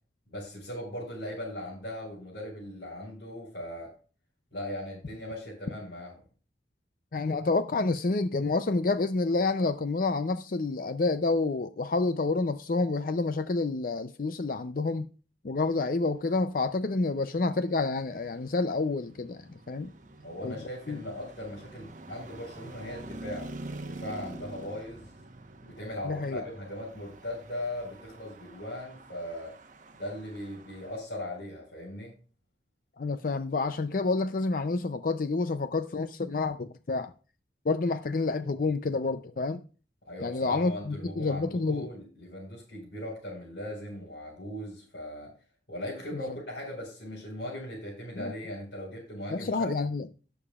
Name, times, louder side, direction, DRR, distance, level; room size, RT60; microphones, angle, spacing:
voice 1, 0.3-3.9 4.5-6.2 20.2-25.1 25.6-29.5 30.0-32.1 40.0-45.3 45.7-49.7, left 1 dB, 65° left, 4.6 m, -39 dB
voice 2, 7.1-15.1 15.4-19.9 20.4-20.6 20.9-21.0 26.0-26.4 33.0-37.1 37.7-39.6 40.2-41.9 46.1-46.2 48.2-48.3 49.3-50.1, left 3 dB, 50° left, 0.5 m, -28 dB
Traffic noise roadway noise, 17.3-31.0, right 2 dB, 45° right, 1.0 m, -46 dB
18.0 x 7.0 x 2.4 m
head